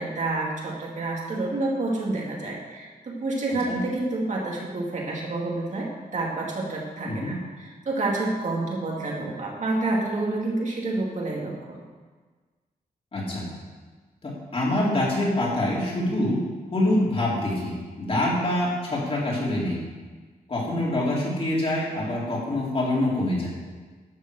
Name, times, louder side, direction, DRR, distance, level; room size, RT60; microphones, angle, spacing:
voice 1, 0.0-11.8, right 2 dB, 50° right, -3 dB, 2.8 m, -29 dB
voice 2, 7.0-7.4 13.1-13.5 14.2-16.4 16.7-19.8 20.5-23.5, left 1 dB, 40° left, -5 dB, 3.9 m, -25 dB
12.0 x 7.4 x 6.8 m, 1.4 s
wide cardioid pair, 130°, 16 cm